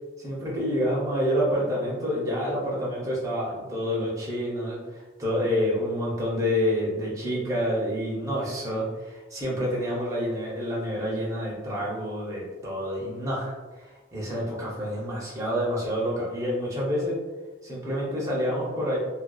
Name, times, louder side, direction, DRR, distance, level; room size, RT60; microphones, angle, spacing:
voice 1, 0.2-17.2 17.6-19.0, equal, 20° right, -5 dB, 0.6 m, -28 dB
2.5 x 2.2 x 2.3 m, 1.3 s
head